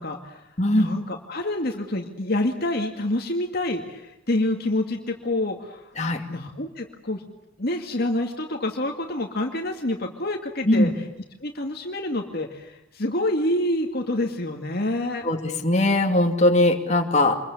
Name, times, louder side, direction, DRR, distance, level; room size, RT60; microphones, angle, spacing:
voice 1, 0.0-5.9 6.3-7.2 7.6-10.9 11.4-15.2, left 1 dB, 50° left, 3 dB, 2.2 m, -27 dB
voice 2, 15.2-17.4, left 1 dB, 35° left, 3 dB, 2.6 m, -20 dB
27.0 x 22.5 x 8.5 m, 0.87 s
head